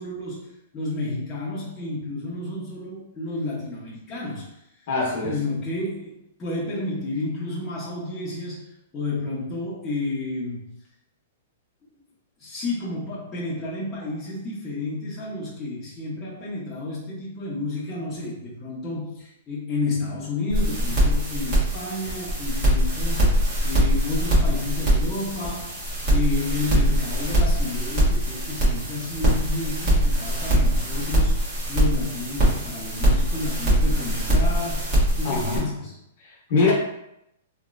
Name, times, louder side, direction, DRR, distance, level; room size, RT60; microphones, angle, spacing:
voice 1, 0.0-4.6 5.2-8.7 8.9-10.8 12.4-36.0, left 2 dB, 15° left, -8 dB, 0.8 m, -31 dB
voice 2, 4.9-5.4 35.2-35.7 36.2-36.7, left 4 dB, 50° left, -3 dB, 1.0 m, -23 dB
sound 1, 20.5-35.6, equal, 35° right, 1.3 m, -22 dB
3.1 x 2.8 x 2.5 m, 0.80 s
hypercardioid pair, 155°, 0 cm